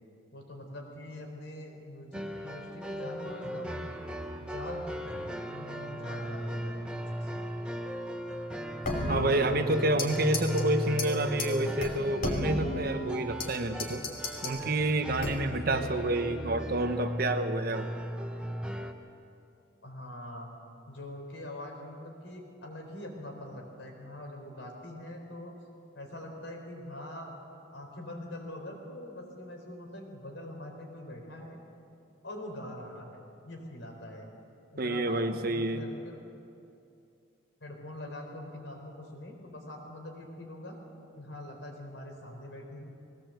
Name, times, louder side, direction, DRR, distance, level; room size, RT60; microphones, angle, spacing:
voice 1, 0.3-3.9 4.4-7.7 9.2-10.7 15.6-16.0 19.8-20.5 20.9-25.5 25.9-27.4 27.7-31.6 32.2-34.3 34.7-36.2 37.6-40.8 41.1-42.8, left 1 dB, 75° left, 2 dB, 4.3 m, -43 dB
sound 1, 2.1-18.9, equal, 5° right, 1.0 m, -37 dB
sound 2, 8.8-10.1 10.3-10.6 11.0-11.1 11.4-11.5 11.8-13.5 13.8-14.6 15.2-15.6, left 1 dB, 45° left, 3.2 m, -33 dB
voice 2, 9.1-14.0 14.4-17.9 34.8-35.8, right 1 dB, 50° right, 8 dB, 1.1 m, -29 dB
20.5 x 18.0 x 8.0 m, 2.6 s
head